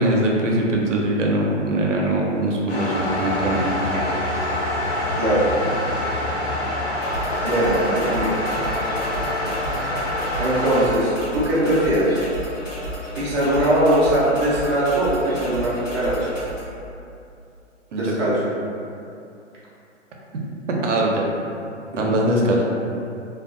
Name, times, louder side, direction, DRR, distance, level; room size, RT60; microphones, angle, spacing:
voice 1, 0.0-3.6 17.9-18.1 20.7-21.3 22.0-22.6, right 1 dB, 75° right, -1 dB, 0.6 m, -21 dB
sound 1, 2.7-10.8, left 1 dB, 65° left, 0.9 m, -25 dB
voice 2, 5.1-5.5 7.4-8.3 10.4-12.2 13.1-16.3 17.9-18.3 21.9-22.0, right 1 dB, 25° right, -9 dB, 0.5 m, -21 dB
sound 2, 7.0-16.6, equal, 80° left, 1.1 m, -32 dB
2.5 x 2.2 x 2.5 m, 2.6 s
figure-of-eight pair, 125°, 37 cm